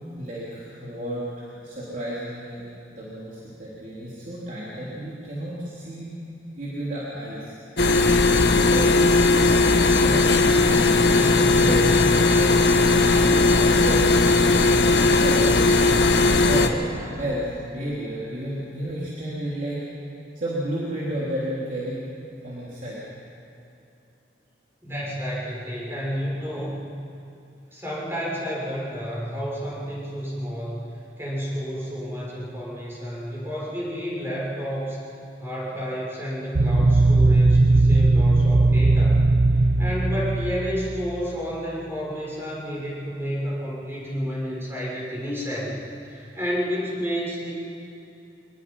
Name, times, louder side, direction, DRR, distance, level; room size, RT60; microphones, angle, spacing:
voice 1, 0.2-2.6 3.0-7.5 8.6-8.9 9.3-9.5 10.0-15.6 16.3-19.8 20.4-22.0 22.4-23.0, right 1 dB, 45° right, -7 dB, 3.5 m, -32 dB
sound 1, 7.8-16.7, left 3 dB, 75° left, 1.4 m, -18 dB
voice 2, 24.8-26.7 27.7-30.9 31.2-35.0 35.4-39.2 39.5-47.5, equal, 15° right, -6 dB, 6.5 m, -31 dB
sound 2, 36.6-41.2, right 2 dB, 70° right, 0.8 m, -18 dB
25.5 x 20.0 x 5.7 m, 2.8 s
head